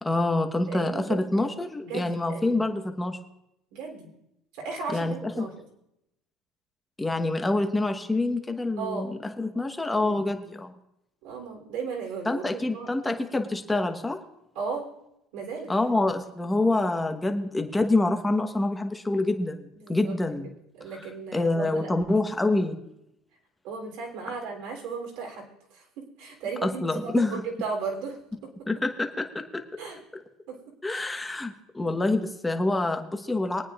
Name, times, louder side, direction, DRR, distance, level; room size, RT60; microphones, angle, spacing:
voice 1, 0.0-3.2 4.9-5.5 7.0-10.7 12.2-14.2 15.7-20.5 21.3-22.8 26.6-27.4 28.7-29.6 30.8-33.6, left 2 dB, 10° left, 5 dB, 1.2 m, -26 dB
voice 2, 0.7-1.5 1.8-2.6 3.7-4.1 4.6-5.5 8.8-9.1 10.0-10.3 11.2-12.9 14.5-14.9 15.3-15.7 19.7-20.1 20.8-21.9 23.6-28.5 29.8-30.0 30.5-30.6 30.9-31.0, right 5 dB, 75° right, 1 dB, 3.4 m, -35 dB
23.5 x 9.2 x 2.5 m, 0.84 s
supercardioid pair, 125°, 0 cm